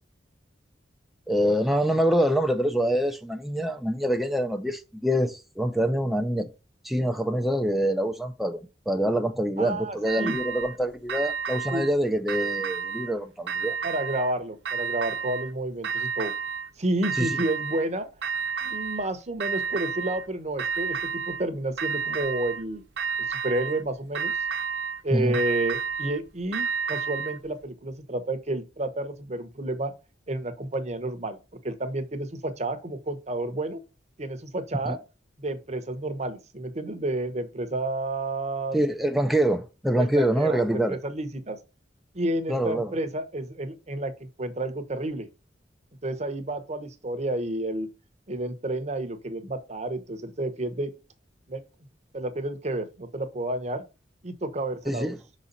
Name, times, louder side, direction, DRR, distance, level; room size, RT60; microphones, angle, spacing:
voice 1, 1.3-6.5 6.8-8.6 8.9-13.8 17.2-17.3 25.1-25.4 34.9-35.0 38.7-41.0 42.5-42.9 54.9-55.2, right 1 dB, ahead, 0.6 m, -25 dB
voice 2, 9.6-10.4 11.7-11.9 13.8-16.3 16.8-18.1 18.6-21.0 21.3-22.8 23.2-24.3 25.0-29.9 30.3-31.4 31.6-33.8 34.2-35.0 35.4-38.8 39.9-41.6 42.1-45.3 46.0-47.9 48.3-50.9 51.5-51.6 52.1-53.8 54.2-55.1, right 1 dB, 40° right, 1.0 m, -30 dB
sound 1, 10.1-10.8 11.1-11.9 12.3-13.1 13.5-14.3 14.7-15.5 15.8-16.7 17.0-17.9 18.2-19.1 19.4-20.3 20.6-21.4 21.8-22.6 23.0-23.8 24.1-25.0 25.3-27.4, right 6 dB, 75° right, 0.7 m, -31 dB
6.1 x 4.2 x 3.9 m
head